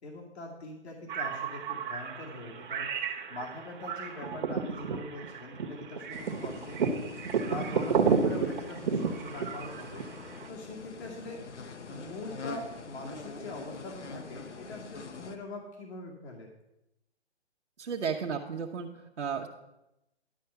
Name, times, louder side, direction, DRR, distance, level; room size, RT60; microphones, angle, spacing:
voice 1, 0.0-6.9 7.5-10.1 10.5-11.4 11.9-16.5, left 2 dB, 70° left, -1 dB, 2.3 m, -43 dB
sound 1, 1.1-10.5, right 5 dB, 45° right, 1.2 m, -32 dB
sound 2, 6.1-15.4, left 4 dB, 85° left, 1.1 m, -44 dB
voice 2, 17.8-19.5, right 6 dB, 85° right, 0 dB, 1.1 m, -34 dB
11.5 x 4.7 x 6.8 m, 0.91 s
hypercardioid pair, 160°, 34 cm